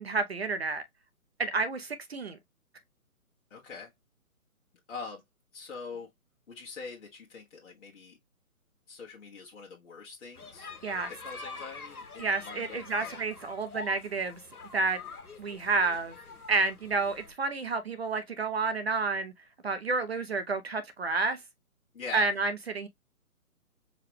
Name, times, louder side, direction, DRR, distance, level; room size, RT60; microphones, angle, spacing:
voice 1, 0.1-0.8 1.4-2.4 10.8-11.1 12.2-14.4 14.7-15.0 15.4-16.1 16.5-19.3 19.6-21.4 22.1-22.9, right 4 dB, 45° right, 0.5 m, -30 dB
voice 2, 3.5-3.9 4.9-5.2 5.5-6.1 6.5-8.2 8.9-10.7 11.1-13.2 21.9-22.3, left 4 dB, 55° left, 1.2 m, -43 dB
sound 1, 10.4-17.3, left 4 dB, 90° left, 1.1 m, -45 dB
4.8 x 2.3 x 3.2 m
figure-of-eight pair, 145°, 43 cm